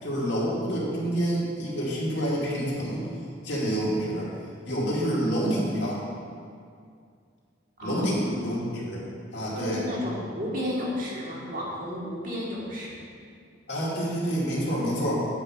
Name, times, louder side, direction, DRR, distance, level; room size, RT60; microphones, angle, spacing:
voice 1, 0.0-3.1 3.4-4.3 4.7-6.0 7.8-9.0 9.3-9.8 13.7-15.3, equal, 65° left, -6 dB, 2.4 m, -27 dB
voice 2, 7.8-8.5 9.5-13.0, left 1 dB, 45° right, -5 dB, 2.0 m, -33 dB
8.6 x 4.9 x 7.6 m, 2.2 s
head